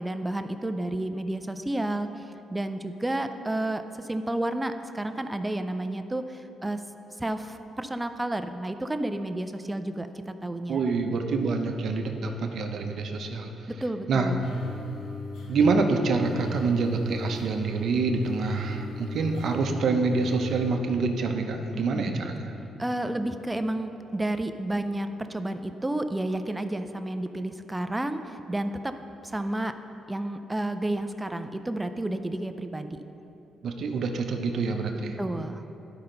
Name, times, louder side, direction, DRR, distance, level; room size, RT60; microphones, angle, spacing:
voice 1, 0.0-6.8 7.2-10.8 13.7-14.5 21.9-22.1 22.8-28.9 29.2-29.8 30.1-33.0 35.2-35.6, right 1 dB, 15° right, 9 dB, 0.4 m, -31 dB
voice 2, 10.7-13.5 14.1-14.3 15.5-22.5 33.6-35.2, right 4 dB, 60° right, 4 dB, 0.8 m, -26 dB
sound 1, 14.4-20.7, left 1 dB, 85° left, 1.5 m, -38 dB
11.5 x 5.5 x 3.9 m, 2.9 s
cardioid pair, 90°, 0 cm